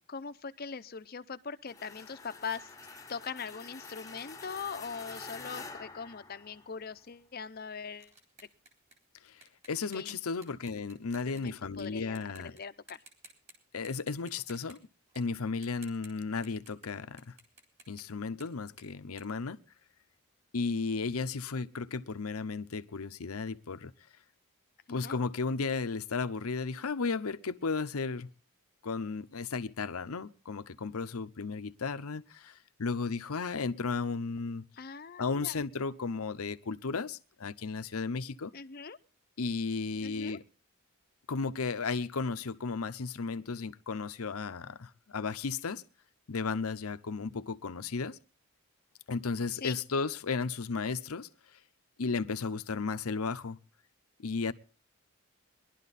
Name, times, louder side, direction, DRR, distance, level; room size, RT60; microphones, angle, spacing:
voice 1, 0.1-2.7 3.1-8.1 9.9-10.2 11.3-13.0 24.9-25.2 34.8-35.6 38.5-39.0 40.0-40.4 49.5-49.8, left 5 dB, 45° left, 0.6 m, -41 dB
sound 1, 1.7-6.9, left 4 dB, 15° left, 0.9 m, -47 dB
sound 2, 6.9-11.8 12.2-12.6 12.9-13.5 13.8-16.9 17.2-20.2, right 2 dB, 30° right, 3.6 m, -58 dB
voice 2, 9.7-12.5 13.7-14.8 15.1-17.3 17.9-19.6 20.5-23.9 24.9-28.3 28.8-34.6 35.2-38.5 39.4-40.4 41.3-45.8 46.3-48.2 49.1-51.3 52.0-53.6 54.2-54.5, left 4 dB, 85° left, 0.7 m, -34 dB
20.5 x 11.5 x 4.1 m
head